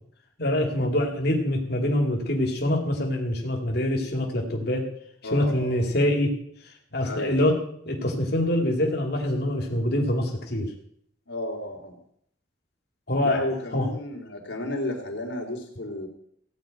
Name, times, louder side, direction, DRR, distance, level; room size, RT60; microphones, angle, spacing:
voice 1, 0.4-4.9 5.3-6.3 6.9-7.6 7.8-10.7 13.1-13.9, left 1 dB, 55° left, 1 dB, 2.7 m, -25 dB
voice 2, 5.2-5.8 7.0-7.4 11.3-12.0 13.2-16.1, left 1 dB, 80° left, 1 dB, 3.7 m, -32 dB
16.5 x 5.7 x 9.1 m, 0.68 s
head